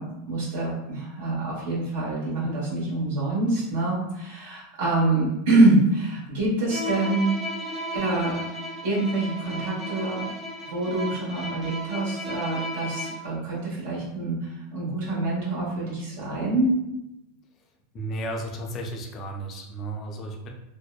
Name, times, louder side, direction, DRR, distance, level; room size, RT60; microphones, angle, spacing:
voice 1, 0.0-7.3 7.9-8.4 8.8-10.3 10.6-16.8, right 2 dB, 75° right, -6 dB, 1.0 m, -25 dB
Bowed string instrument, 6.7-13.4, equal, 20° right, 0.5 m, -34 dB
voice 2, 17.9-20.5, right 1 dB, 35° left, 2 dB, 0.4 m, -33 dB
2.7 x 2.0 x 2.2 m, 0.89 s
supercardioid pair, 130°, 0 cm